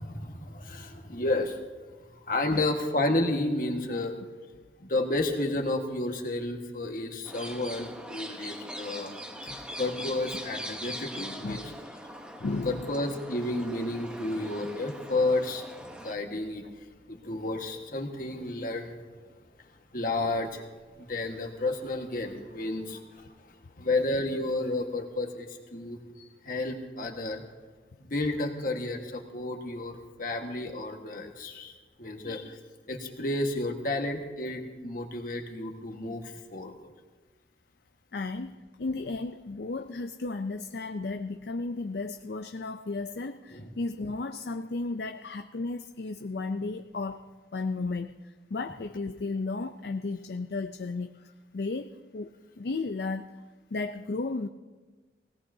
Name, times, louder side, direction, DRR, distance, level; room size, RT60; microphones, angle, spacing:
voice 1, 0.0-1.6 2.1-4.2 4.8-9.1 9.4-11.6 12.6-16.7 17.1-19.0 19.9-20.6 21.0-27.4 28.0-31.7 32.0-32.6 32.9-36.7 43.5-43.7, left 2 dB, 50° left, 3 dB, 1.5 m, -31 dB
sound 1, 7.2-16.1, equal, 5° right, 1.0 m, -41 dB
voice 2, 11.4-11.7 12.4-12.9 38.1-47.2 47.5-48.1 48.5-51.2 51.5-52.3 52.6-53.3 53.7-54.5, left 3 dB, 65° left, 8 dB, 0.5 m, -34 dB
20.5 x 17.5 x 2.8 m, 1.3 s
head